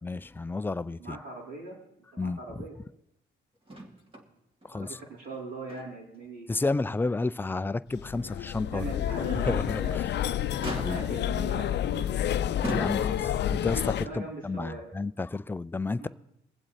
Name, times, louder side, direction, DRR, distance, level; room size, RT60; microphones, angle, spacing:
voice 1, 0.0-1.2 2.2-2.7 4.6-5.0 6.5-8.8 9.5-10.0 10.8-11.0 12.8-16.1, left 3 dB, 10° left, 0.4 m, -31 dB
voice 2, 1.0-1.8 2.1-2.7 4.7-6.6 8.7-10.1 10.8-12.4 14.0-14.9 16.0-16.1, right 3 dB, 70° right, 4.3 m, -40 dB
Motor vehicle (road), 3.7-4.3 4.6-4.7 5.2-6.2 6.6-6.7 7.3-7.4 9.6-10.1 10.6-11.3 12.1-12.2 12.6-13.4 14.5-14.6, right 1 dB, 25° right, 2.4 m, -38 dB
sound 1, 7.9-14.1, left 10 dB, 60° left, 0.6 m, -29 dB
23.0 x 7.7 x 4.2 m
cardioid pair, 90°, 20 cm